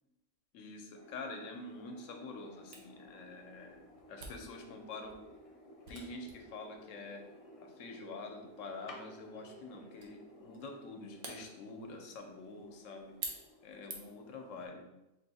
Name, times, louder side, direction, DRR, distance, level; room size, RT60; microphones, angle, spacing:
voice 1, 0.5-3.8 4.1-5.2 5.9-7.2 7.6-13.2 13.6-14.8, left 3 dB, 90° left, 4 dB, 1.0 m, -46 dB
sound 1, 0.9-14.7, left 1 dB, 35° left, 0.6 m, -56 dB
Camera, 2.7-14.3, right 3 dB, 80° right, 1.1 m, -51 dB
3.9 x 2.6 x 4.0 m, 0.96 s
omnidirectional pair, 1.3 m